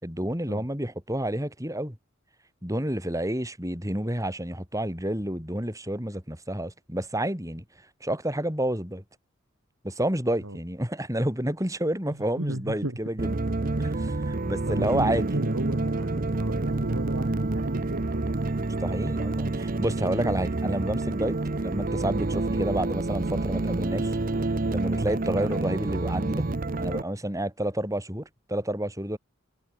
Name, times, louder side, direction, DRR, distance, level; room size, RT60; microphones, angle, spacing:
voice 1, 0.0-2.0 2.6-7.6 8.0-9.0 9.8-13.3 13.8-15.2 18.8-21.4 21.6-24.2 24.7-26.4 26.8-29.2, right 1 dB, 15° right, 6.3 m, -29 dB
voice 2, 12.1-13.0 13.7-13.9 14.7-18.5 20.6-20.8 25.3-25.5, right 1 dB, 75° right, 3.0 m, -35 dB
sound 1, 13.2-27.0, right 2 dB, 40° right, 0.8 m, -28 dB
head